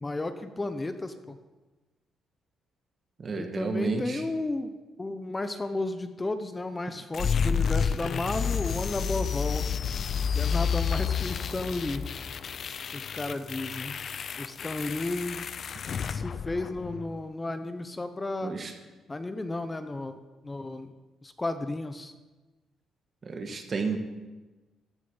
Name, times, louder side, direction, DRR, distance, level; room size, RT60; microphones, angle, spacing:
voice 1, 0.0-1.4 3.4-4.7 5.0-9.7 10.3-12.1 12.9-14.0 14.4-15.4 16.1-18.5 19.1-20.1 20.4-20.9 21.2-22.1, left 2 dB, 20° left, 9 dB, 0.7 m, -33 dB
voice 2, 3.2-4.2 18.4-18.7 23.2-24.0, right 4 dB, 45° right, 6 dB, 1.5 m, -31 dB
sound 1, 7.1-17.1, left 6 dB, 55° left, 0.4 m, -30 dB
15.0 x 6.3 x 5.5 m, 1.2 s
cardioid pair, 90°, 0 cm